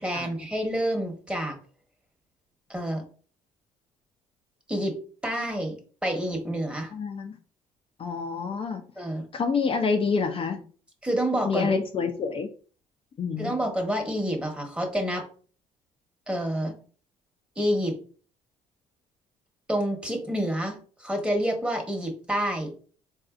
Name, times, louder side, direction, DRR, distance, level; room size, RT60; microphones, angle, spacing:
voice 1, 0.0-1.6 2.7-3.0 4.7-5.0 5.2-6.9 9.0-9.2 11.0-11.7 13.4-15.3 16.3-16.7 17.6-18.0 19.7-22.7, equal, 5° right, 2 dB, 1.2 m, -28 dB
voice 2, 6.9-7.3 8.0-8.8 9.3-10.6 11.4-12.5 13.2-13.5, left 5 dB, 40° left, 4 dB, 0.5 m, -27 dB
3.9 x 2.7 x 2.4 m, 0.41 s
supercardioid pair, 70°, 15 cm